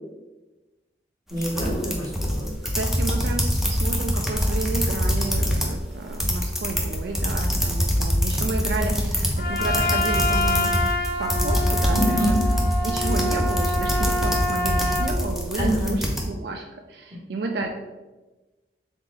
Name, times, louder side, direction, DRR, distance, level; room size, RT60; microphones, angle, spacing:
sound 1, 1.3-5.8 6.0-16.2, equal, ahead, 0.4 m, -24 dB
voice 1, 1.3-2.5 11.9-12.4 15.6-15.9, equal, 20° right, -6 dB, 1.2 m, -26 dB
voice 2, 2.6-17.7, right 3 dB, 70° right, 3 dB, 0.3 m, -32 dB
Trumpet, 9.4-15.1, left 1 dB, 60° left, 0.6 m, -26 dB
3.8 x 3.7 x 3.1 m, 1.2 s
head